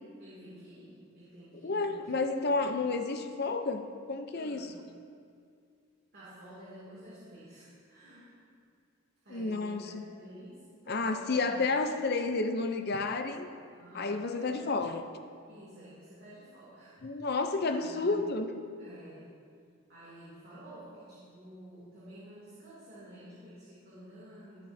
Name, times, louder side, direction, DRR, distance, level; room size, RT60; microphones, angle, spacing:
voice 1, 0.2-2.1 2.4-2.9 4.3-4.7 6.1-8.3 9.2-11.6 13.7-14.1 14.4-14.7 15.5-18.1 18.8-19.3 19.9-24.7, right 1 dB, 50° right, -10 dB, 2.7 m, -51 dB
voice 2, 1.6-4.7 9.3-10.0 10.9-13.5 13.9-15.1 17.0-18.5, left 3 dB, 50° left, 7 dB, 0.6 m, -31 dB
19.0 x 7.5 x 2.8 m, 2.3 s
head